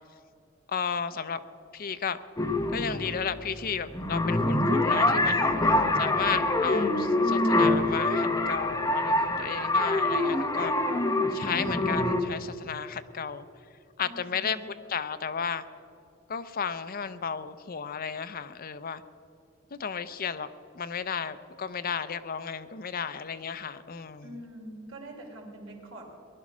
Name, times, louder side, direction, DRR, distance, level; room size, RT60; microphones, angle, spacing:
voice 1, 0.7-1.4 1.7-2.2 2.7-5.6 6.0-10.7 11.3-13.5 14.0-14.6 14.9-15.6 16.3-19.0 19.7-20.5 20.7-24.2, left 6 dB, 45° left, 11 dB, 0.6 m, -33 dB
sound 1, 2.4-12.2, left 2 dB, 15° left, 1.1 m, -25 dB
voice 2, 14.0-14.6 24.2-26.1, right 1 dB, 80° right, 0 dB, 3.2 m, -44 dB
20.0 x 11.5 x 6.1 m, 2.5 s
head